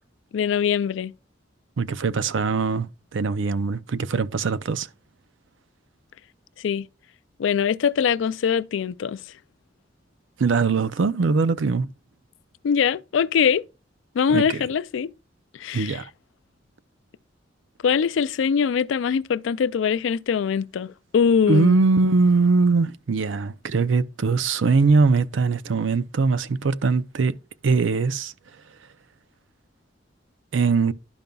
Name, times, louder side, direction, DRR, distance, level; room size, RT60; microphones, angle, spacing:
voice 1, 0.3-1.1 6.6-6.9 7.4-9.2 12.6-13.6 14.2-15.1 15.6-16.0 17.8-21.8, left 7 dB, 80° left, 0.3 m, -22 dB
voice 2, 1.8-4.9 10.4-11.9 14.3-14.5 15.7-16.0 21.5-27.3 27.6-28.3 30.5-30.9, right 4 dB, 80° right, 0.5 m, -21 dB
11.5 x 5.2 x 2.3 m
head